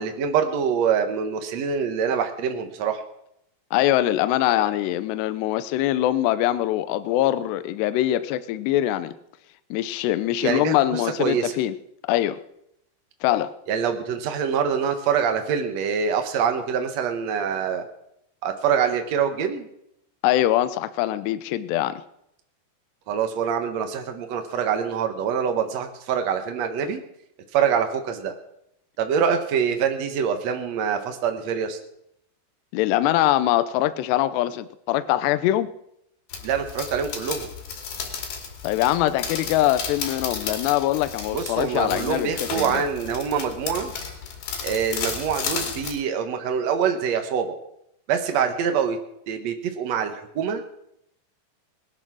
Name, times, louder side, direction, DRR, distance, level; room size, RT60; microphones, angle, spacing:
voice 1, 0.0-3.0 10.4-11.5 13.7-17.8 18.4-19.7 23.1-27.0 27.5-28.3 29.0-31.8 36.4-37.5 41.3-43.9 44.6-47.6 48.1-49.0 49.3-50.6, right 7 dB, 80° right, 6 dB, 1.5 m, -25 dB
voice 2, 3.7-9.1 9.7-11.7 12.1-12.4 13.2-13.5 20.2-22.0 32.7-35.7 38.6-42.8, left 13 dB, 80° left, 12 dB, 2.7 m, -23 dB
sound 1, 36.3-46.0, left 6 dB, 60° left, 4.0 m, -33 dB
19.5 x 11.0 x 6.2 m, 0.78 s
omnidirectional pair, 5.3 m